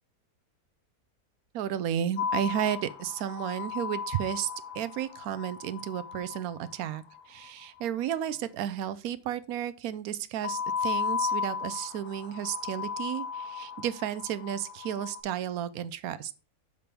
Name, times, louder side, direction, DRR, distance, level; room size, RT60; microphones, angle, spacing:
voice 1, 1.5-4.5 4.7-16.3, right 10 dB, 75° right, 1.0 m, -33 dB
sound 1, 2.2-7.5 10.4-15.2, left 6 dB, 75° left, 1.2 m, -35 dB
6.8 x 3.4 x 5.7 m
omnidirectional pair, 1.6 m